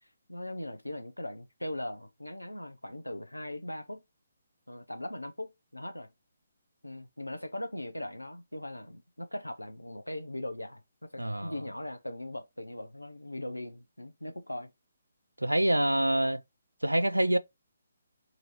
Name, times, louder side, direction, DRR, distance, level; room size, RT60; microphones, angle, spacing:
voice 1, 0.3-4.0 4.7-6.1 6.8-10.8 11.1-14.7, left 1 dB, 85° left, 0.8 m, -39 dB
voice 2, 11.2-11.5 15.4-16.4 16.8-17.4, right 1 dB, 85° right, 0.4 m, -26 dB
3.8 x 3.0 x 4.3 m
figure-of-eight pair, 140°, 0 cm